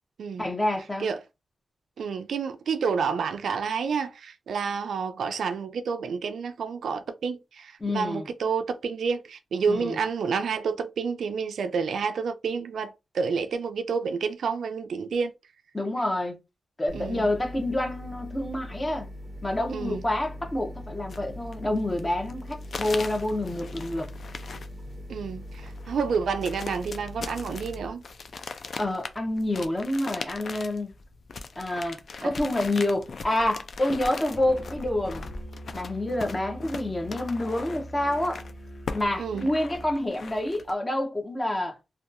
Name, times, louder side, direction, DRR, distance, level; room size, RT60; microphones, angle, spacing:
voice 1, 0.4-1.1 7.8-8.3 9.7-10.0 15.7-16.4 16.8-19.1 19.4-24.1 28.8-30.9 31.6-35.3 35.7-38.4 38.9-41.8, left 1 dB, 20° left, 0.6 m, -28 dB
voice 2, 2.0-15.3 16.9-17.3 19.7-20.0 25.1-28.0 32.2-32.3 39.2-39.5, right 5 dB, 85° right, 0.3 m, -29 dB
sound 1, 16.9-27.9, left 1 dB, 20° right, 0.5 m, -41 dB
sound 2, 21.1-40.7, left 4 dB, 55° left, 0.3 m, -40 dB
Musical instrument, 34.3-40.0, right 1 dB, 35° left, 0.9 m, -43 dB
2.7 x 2.2 x 2.4 m
wide cardioid pair, 115°, 0 cm